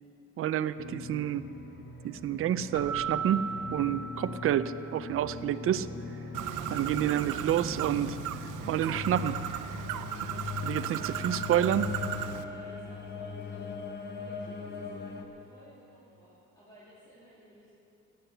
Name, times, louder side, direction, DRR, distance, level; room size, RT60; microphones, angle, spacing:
voice 1, 0.4-1.5 2.0-5.9 6.7-8.2 8.7-9.4 10.6-11.9, right 11 dB, 45° right, 13 dB, 0.5 m, -29 dB
sound 1, 0.8-15.2, left 5 dB, 35° left, 1.0 m, -41 dB
Keyboard (musical), 2.7-5.1, right 6 dB, 15° right, 1.0 m, -36 dB
Bird, 6.3-12.4, right 10 dB, 80° right, 0.7 m, -36 dB
voice 2, 10.7-11.9 12.3-13.7 14.1-17.7, equal, 15° left, -9 dB, 2.7 m, -56 dB
16.0 x 9.8 x 8.0 m, 2.8 s
cardioid pair, 175°, 31 cm